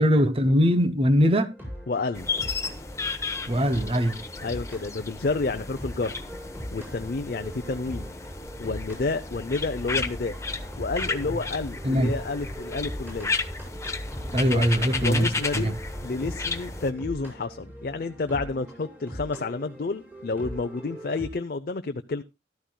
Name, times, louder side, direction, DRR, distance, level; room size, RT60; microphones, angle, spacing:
voice 1, 0.0-1.5 3.5-4.2 11.8-12.1 14.3-15.3 15.5-15.7, equal, 30° right, 0.8 m, -21 dB
sound 1, 1.5-21.3, equal, 10° right, 5.3 m, -41 dB
voice 2, 1.9-2.3 4.4-6.1 6.7-8.1 8.6-10.4 10.8-13.3 14.5-14.7 15.0-22.2, left 3 dB, 55° left, 0.6 m, -30 dB
sound 2, 2.1-16.9, left 4 dB, 15° left, 1.0 m, -33 dB
14.0 x 13.0 x 2.3 m
head